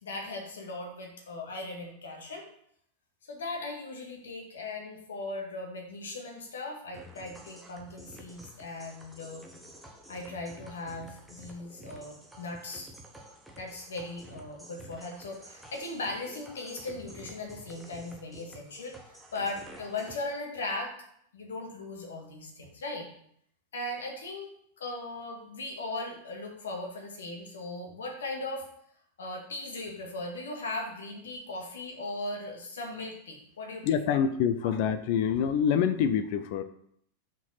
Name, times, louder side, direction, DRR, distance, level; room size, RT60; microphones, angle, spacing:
voice 1, 0.0-2.5 3.3-9.4 10.1-12.9 13.6-20.9 21.3-23.1 23.7-28.7 29.2-34.2, left 2 dB, 65° left, 1 dB, 1.7 m, -38 dB
sound 1, 6.9-20.2, right 1 dB, 5° right, 1.2 m, -50 dB
voice 2, 33.8-36.6, left 8 dB, 45° left, 11 dB, 0.6 m, -26 dB
5.8 x 4.6 x 5.8 m, 0.68 s
figure-of-eight pair, 90°, 0 cm